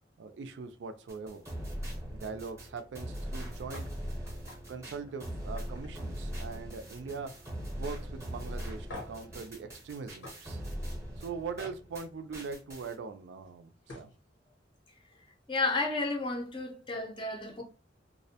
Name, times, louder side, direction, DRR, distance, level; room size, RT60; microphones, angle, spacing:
voice 1, 0.2-1.4 2.1-3.9 4.7-7.4 7.8-10.6 11.2-14.1, right 5 dB, 65° right, 0.3 m, -41 dB
sound 1, 1.1-12.1 12.3-12.9, equal, 15° right, 0.7 m, -40 dB
sound 2, 3.7-3.9 4.2-4.6 5.0-5.2 5.6-6.7 7.0-7.4 7.9-8.0 8.9-9.3 10.2-10.4 11.6-11.8 13.5-13.6 13.8-14.1, left 1 dB, 85° left, 0.9 m, -47 dB
voice 2, 15.5-17.6, left 3 dB, 25° left, 0.5 m, -32 dB
2.4 x 2.1 x 2.7 m
head